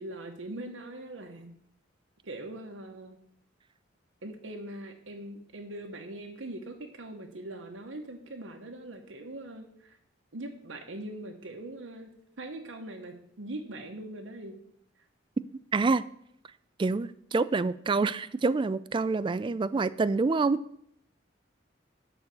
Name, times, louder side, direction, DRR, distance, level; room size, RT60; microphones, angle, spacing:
voice 1, 0.0-1.6 2.2-3.2 4.2-10.0 10.3-12.1 12.4-14.6, right 1 dB, 85° right, 3 dB, 1.0 m, -41 dB
voice 2, 15.7-16.0 16.8-20.6, right 3 dB, 25° right, 16 dB, 0.3 m, -27 dB
11.5 x 4.1 x 6.9 m, 0.70 s
head